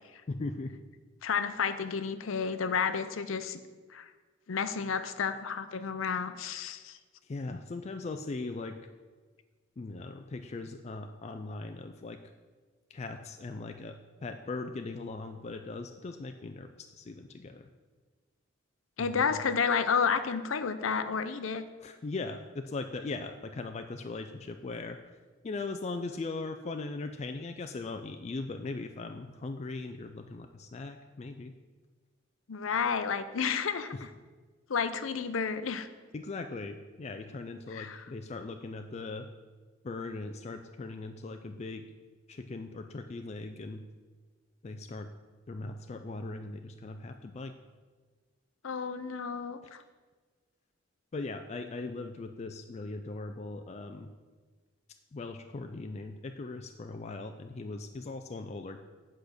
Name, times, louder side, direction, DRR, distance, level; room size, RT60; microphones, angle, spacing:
voice 1, 0.3-0.8 7.2-8.8 9.8-12.2 12.9-14.0 14.2-17.7 19.0-19.4 21.8-25.0 25.4-31.5 33.9-34.0 36.1-39.3 39.8-41.9 42.3-43.8 44.6-45.1 45.5-47.5 49.6-49.7 51.1-54.1 55.1-58.8, left 3 dB, 35° left, 6 dB, 0.4 m, -39 dB
voice 2, 1.2-3.6 3.9-4.1 4.5-7.0 19.0-21.6 32.5-34.1 34.7-35.9 37.7-38.1 48.6-49.8, left 6 dB, 75° left, 11 dB, 0.6 m, -31 dB
8.3 x 5.1 x 6.4 m, 1.4 s
head